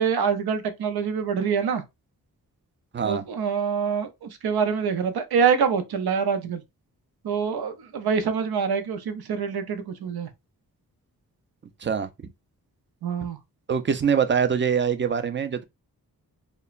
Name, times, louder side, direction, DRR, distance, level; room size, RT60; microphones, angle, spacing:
voice 1, 0.0-1.8 3.0-6.6 7.2-10.3 13.0-13.4, right 6 dB, 90° right, 0.6 m, -25 dB
voice 2, 13.7-15.6, right 7 dB, 35° right, 0.4 m, -23 dB
2.9 x 2.1 x 2.3 m
wide cardioid pair, 75°, 36 cm